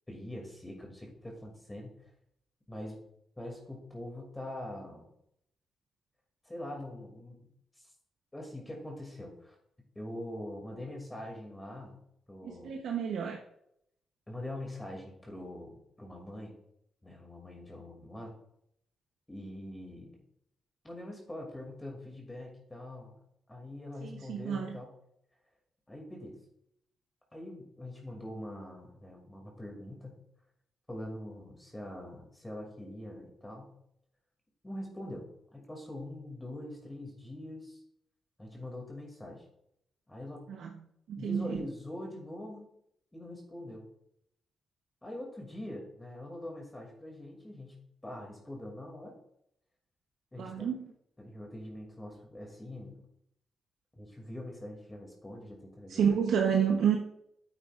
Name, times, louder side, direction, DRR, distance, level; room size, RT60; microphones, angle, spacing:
voice 1, 0.1-2.1 2.7-3.0 3.4-5.1 6.4-7.4 7.8-7.9 8.3-9.6 9.9-11.9 12.3-12.8 14.3-16.5 17.0-18.3 19.3-20.1 20.8-23.1 23.5-24.9 25.9-26.4 27.3-30.2 30.9-33.7 34.6-37.8 38.4-39.5 40.1-40.5 41.2-42.7 43.1-43.9 45.0-49.2 50.3-50.7 51.2-53.0 54.0-56.1, left 1 dB, 15° left, 0 dB, 2.5 m, -43 dB
voice 2, 12.4-13.4 24.0-24.8 40.5-40.7 41.1-41.6 50.4-50.9 55.9-57.0, right 7 dB, 80° right, 2 dB, 0.9 m, -29 dB
9.3 x 8.7 x 2.5 m, 0.73 s
cardioid pair, 75°, 0 cm